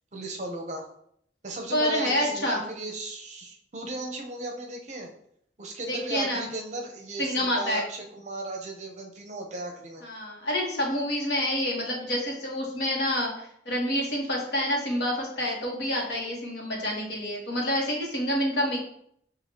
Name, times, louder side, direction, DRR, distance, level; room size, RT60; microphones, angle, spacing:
voice 1, 0.1-0.9 1.4-5.1 5.6-10.0, right 2 dB, 40° right, 1 dB, 0.7 m, -36 dB
voice 2, 1.7-2.6 5.9-6.4 7.2-7.8 10.0-18.8, left 1 dB, 65° left, -1 dB, 1.2 m, -28 dB
6.0 x 2.5 x 2.9 m, 0.67 s
head